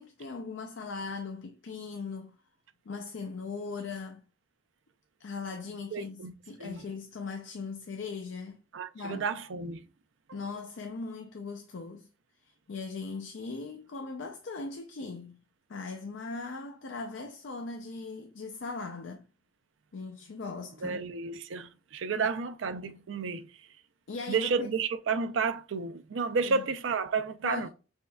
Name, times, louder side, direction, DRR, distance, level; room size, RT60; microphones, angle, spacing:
voice 1, 0.0-2.4 2.9-4.2 5.2-8.6 8.9-9.3 10.3-12.1 12.7-15.4 15.7-19.2 19.9-21.0 22.1-22.3 24.1-24.7 26.4-26.6 27.4-27.7, left 4 dB, 65° left, 0.5 m, -39 dB
voice 2, 5.9-6.3 6.6-6.9 8.7-9.8 10.3-10.4 20.8-23.5 24.3-27.7, right 5 dB, 75° right, 0.5 m, -31 dB
5.2 x 3.5 x 2.2 m
head